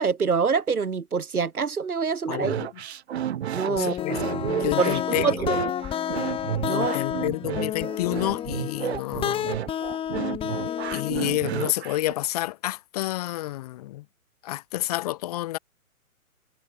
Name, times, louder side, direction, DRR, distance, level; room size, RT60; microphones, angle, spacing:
voice 1, 0.0-2.6 3.5-3.9 4.8-5.6 6.6-6.9, right 5 dB, 85° right, 1.0 m, -25 dB
voice 2, 2.3-2.7 3.7-4.2 4.5-5.3 6.7-9.5 10.9-14.0 14.4-15.6, left 16 dB, 25° left, 0.9 m, -29 dB
sound 1, 2.4-12.1, right 10 dB, 45° right, 1.2 m, -31 dB
sound 2, 3.8-11.4, left 10 dB, 10° left, 1.6 m, -30 dB
figure-of-eight pair, 120°, 43 cm